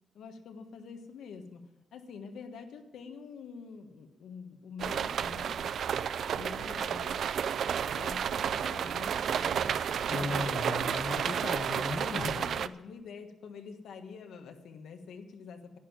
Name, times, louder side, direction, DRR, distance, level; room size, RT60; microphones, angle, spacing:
voice 1, 0.1-1.6 1.9-5.7 6.3-7.3 7.6-10.4 12.0-15.8, left 5 dB, 85° left, 5 dB, 1.4 m, -46 dB
sound 1, 4.8-12.7, right 8 dB, 70° right, 0.4 m, -31 dB
voice 2, 10.1-12.4, left 4 dB, 45° left, 7 dB, 0.7 m, -36 dB
11.0 x 9.8 x 7.3 m, 1.0 s
cardioid pair, 115°, 0 cm